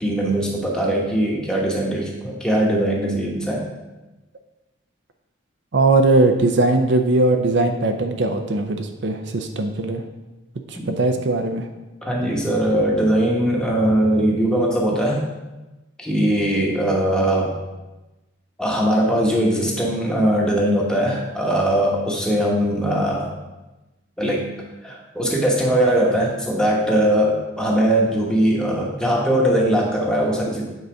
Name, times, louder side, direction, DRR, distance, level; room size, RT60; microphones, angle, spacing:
voice 1, 0.0-3.6 10.7-10.9 12.0-15.2 16.0-17.5 18.6-23.3 24.2-24.4 24.8-30.6, right 1 dB, 5° left, -3 dB, 1.1 m, -20 dB
voice 2, 5.7-10.0 10.9-11.7, right 2 dB, 55° right, 5 dB, 0.5 m, -19 dB
8.1 x 3.9 x 4.9 m, 1.1 s
head